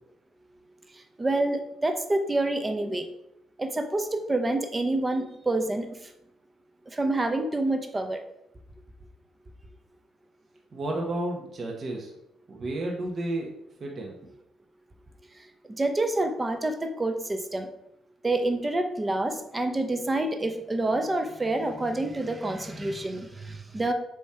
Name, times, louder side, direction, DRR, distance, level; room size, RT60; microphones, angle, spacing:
voice 1, 1.2-3.1 3.6-5.9 6.9-8.2 15.8-17.7 18.2-23.9, right 2 dB, 20° right, 6 dB, 0.9 m, -27 dB
voice 2, 10.7-12.1 12.5-13.5 13.8-14.1, right 1 dB, 45° right, -1 dB, 1.2 m, -31 dB
7.5 x 3.1 x 4.3 m, 0.80 s
cardioid pair, 90°, 0 cm